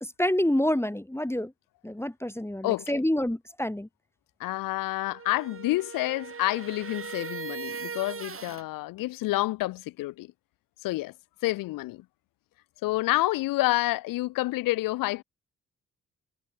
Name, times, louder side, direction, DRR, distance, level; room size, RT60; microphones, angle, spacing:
voice 1, 0.2-1.5 1.8-3.9, left 1 dB, 5° left, 1.6 m, -27 dB
voice 2, 2.6-3.0 4.4-10.3 10.8-11.1 11.4-12.0 12.8-15.2, left 19 dB, 80° left, 1.6 m, -28 dB
sound 1, 5.1-8.7, right 6 dB, 40° right, 1.9 m, -39 dB
hypercardioid pair, 40°, 33 cm